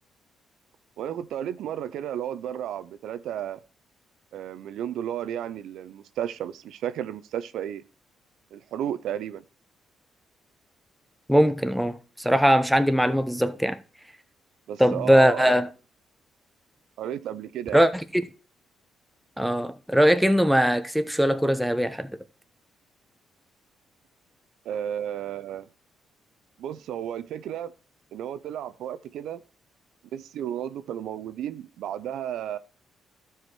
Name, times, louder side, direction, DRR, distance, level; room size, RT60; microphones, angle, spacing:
voice 1, 1.0-3.6 4.3-7.8 8.5-9.4 14.7-15.6 17.0-17.9 24.6-25.7 26.6-27.7 28.1-29.4 30.1-32.6, right 10 dB, 80° right, 0.6 m, -33 dB
voice 2, 11.3-13.8 14.8-15.7 17.7-18.2 19.4-22.2, equal, ahead, 0.8 m, -21 dB
12.5 x 4.9 x 4.5 m
cardioid pair, 90°, 0 cm